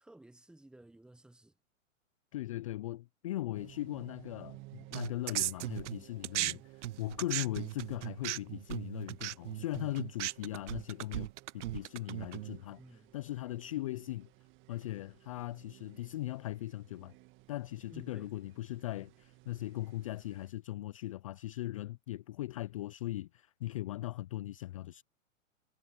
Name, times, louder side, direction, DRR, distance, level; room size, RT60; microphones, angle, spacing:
voice 1, 0.0-1.5 6.4-6.7 12.8-13.2 17.9-18.3, right 1 dB, ahead, 0.9 m, -55 dB
voice 2, 2.3-6.6 7.0-11.3 11.5-14.3 14.7-17.1 17.5-25.0, left 15 dB, 30° left, 0.4 m, -39 dB
sound 1, 3.5-20.5, right 21 dB, 30° right, 1.9 m, -58 dB
sound 2, 4.9-6.5 6.8-12.6, right 14 dB, 65° right, 0.5 m, -37 dB
hypercardioid pair, 125°, 40 cm